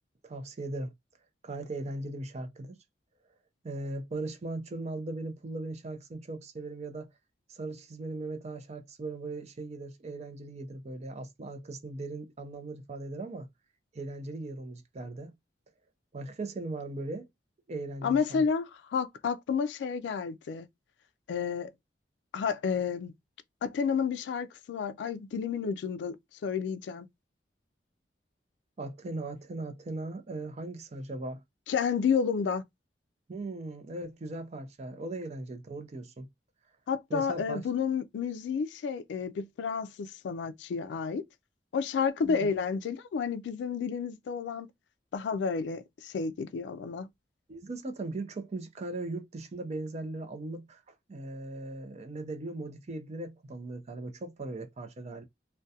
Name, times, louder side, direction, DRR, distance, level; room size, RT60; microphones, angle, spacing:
voice 1, 0.2-0.9 1.4-2.8 3.6-7.1 7.5-13.5 13.9-15.3 16.1-17.3 17.7-18.4 28.8-31.4 33.3-36.3 37.1-37.6 42.2-42.5 47.5-55.2, right 2 dB, 40° right, 0.5 m, -38 dB
voice 2, 18.0-20.7 21.3-21.7 22.3-23.1 23.6-26.2 26.4-27.1 31.7-32.6 36.9-41.2 41.7-44.7 45.1-47.1, left 6 dB, 90° left, 0.3 m, -31 dB
2.3 x 2.1 x 2.6 m
head